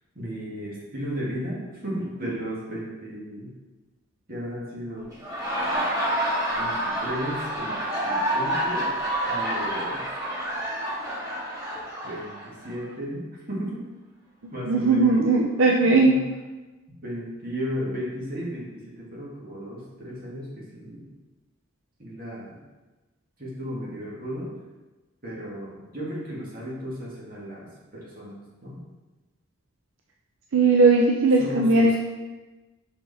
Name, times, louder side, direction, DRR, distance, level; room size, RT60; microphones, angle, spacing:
voice 1, 0.2-3.5 4.3-5.1 6.6-7.8 8.1-8.9 9.3-10.1 12.0-13.8 14.5-15.2 15.6-16.2 17.0-21.1 22.0-22.6 23.4-24.5 25.2-28.8 31.4-32.0, equal, 45° right, -5 dB, 1.9 m, -35 dB
Laughter, 5.1-12.7, right 1 dB, 15° right, 2.2 m, -28 dB
voice 2, 14.7-16.2 30.5-32.0, right 3 dB, 75° right, 0 dB, 0.6 m, -18 dB
5.8 x 4.6 x 4.2 m, 1.2 s
head